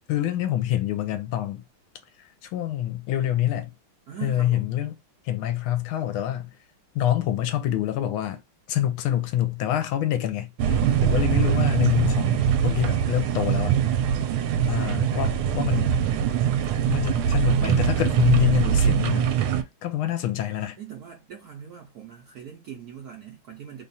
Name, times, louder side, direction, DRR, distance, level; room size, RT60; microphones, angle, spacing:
voice 1, 0.1-1.6 2.4-3.7 4.2-4.9 5.2-6.5 6.9-8.4 8.7-13.8 14.6-16.0 16.9-19.3 19.8-20.8, left 12 dB, 75° left, 1.4 m, -26 dB
voice 2, 4.1-4.7 20.8-23.9, right 9 dB, 65° right, 0.9 m, -41 dB
sound 1, 10.6-19.6, right 8 dB, 80° right, 1.4 m, -22 dB
3.4 x 2.4 x 3.9 m
omnidirectional pair, 2.4 m